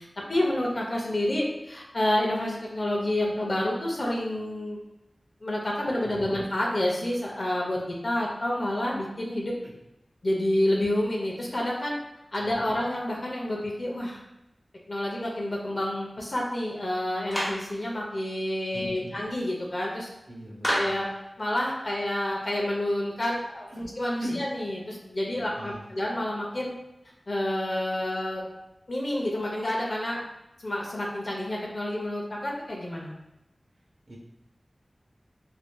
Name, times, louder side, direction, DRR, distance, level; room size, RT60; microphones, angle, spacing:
voice 1, 0.3-4.8 5.4-9.5 10.2-12.0 12.3-14.2 14.9-20.1 20.7-21.1 21.4-26.7 27.3-28.5 28.9-30.2 30.6-33.1, left 1 dB, 55° left, -2 dB, 0.7 m, -29 dB
voice 2, 6.0-6.4 9.6-9.7 12.4-12.8 18.7-19.1 20.3-21.0 23.7-23.9 24.2-24.4 25.3-25.8 34.1-34.2, equal, 60° right, -3 dB, 0.8 m, -40 dB
Clapping, 17.3-17.7 20.6-21.1, equal, ahead, 1.1 m, -27 dB
3.3 x 2.6 x 2.3 m, 0.91 s
wide cardioid pair, 75°, 0 cm